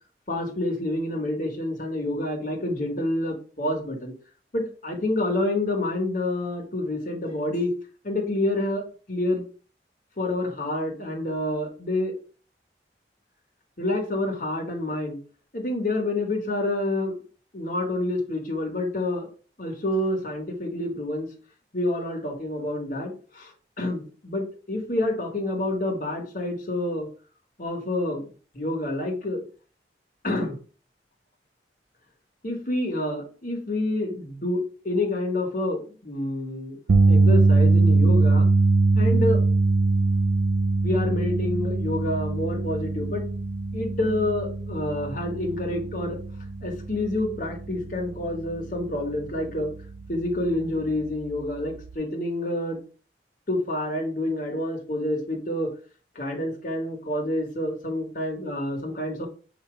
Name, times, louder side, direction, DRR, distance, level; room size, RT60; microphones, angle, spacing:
voice 1, 0.3-4.1 4.5-7.7 8.0-9.4 10.2-12.1 13.8-15.2 15.5-17.2 17.5-19.3 19.6-21.3 21.7-23.5 23.8-27.1 27.6-28.2 28.5-29.4 30.2-30.6 32.4-36.8 37.1-38.5 38.9-39.4 40.8-43.3 43.7-46.2 46.6-49.7 50.1-52.8 53.5-55.7 56.1-59.3, left 1 dB, 45° left, 0 dB, 1.3 m, -28 dB
sound 1, 36.9-49.2 49.5-49.8 51.9-52.0, right 3 dB, 85° right, 0.5 m, -22 dB
5.9 x 2.9 x 3.1 m, 0.39 s
head